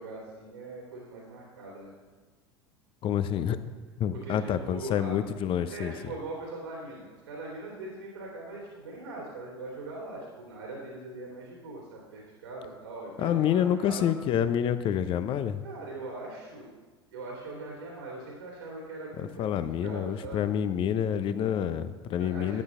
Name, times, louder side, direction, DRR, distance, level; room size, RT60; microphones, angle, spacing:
voice 1, 0.0-1.9 4.1-5.2 5.7-14.2 15.6-16.7 17.1-19.5 19.8-20.5 22.1-22.6, right 2 dB, 75° right, -3 dB, 2.9 m, -41 dB
voice 2, 3.0-3.6 4.0-5.9 13.2-15.6 19.2-22.6, left 9 dB, 40° left, 12 dB, 0.8 m, -28 dB
13.0 x 9.8 x 3.8 m, 1.3 s
figure-of-eight pair, 75°, 14 cm